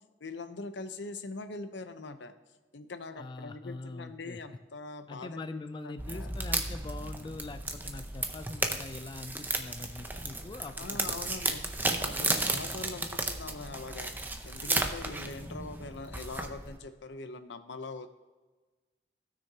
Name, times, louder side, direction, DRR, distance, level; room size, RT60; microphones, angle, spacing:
voice 1, 0.2-2.3 2.7-6.4 10.8-11.6 12.0-14.1 14.4-18.1, left 3 dB, 80° left, 9 dB, 0.7 m, -42 dB
voice 2, 3.2-4.4 5.1-11.1 11.4-11.5, left 2 dB, 25° left, 9 dB, 0.3 m, -43 dB
sound 1, 6.0-16.8, right 2 dB, 10° right, 0.7 m, -34 dB
16.0 x 6.4 x 2.8 m, 1.3 s
head